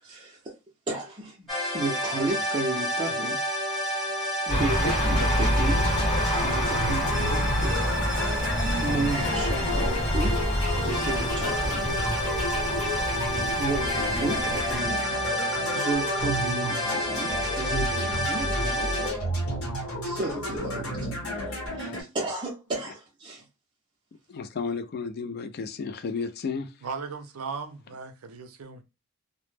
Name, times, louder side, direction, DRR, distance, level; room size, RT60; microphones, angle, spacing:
voice 1, 0.0-0.4 0.9-3.4 4.4-7.8 8.7-10.4 10.8-11.9 13.6-15.1 15.7-19.2 20.0-23.4, right 2 dB, 20° right, 0.5 m, -33 dB
sound 1, 1.5-19.1, left 1 dB, ahead, 0.9 m, -30 dB
sound 2, 4.5-14.8, equal, 25° left, 1.0 m, -28 dB
sound 3, 4.8-22.0, equal, 80° left, 1.0 m, -31 dB
voice 2, 21.2-22.0 24.3-26.7, left 5 dB, 45° left, 0.3 m, -34 dB
voice 3, 26.8-28.8, right 5 dB, 80° right, 0.5 m, -37 dB
2.1 x 2.0 x 3.1 m
head